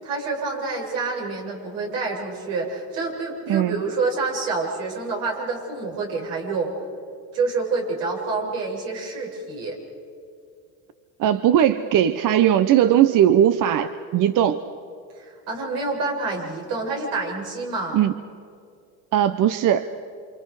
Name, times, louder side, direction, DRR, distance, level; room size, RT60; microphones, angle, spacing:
voice 1, 0.0-6.7 7.3-9.8 15.1-18.0, right 3 dB, 80° right, -1 dB, 7.3 m, -27 dB
voice 2, 3.5-3.8 11.2-14.6 17.9-18.1 19.1-19.9, right 10 dB, 45° right, 12 dB, 0.9 m, -19 dB
28.5 x 27.5 x 4.9 m, 2.4 s
supercardioid pair, 100°, 43 cm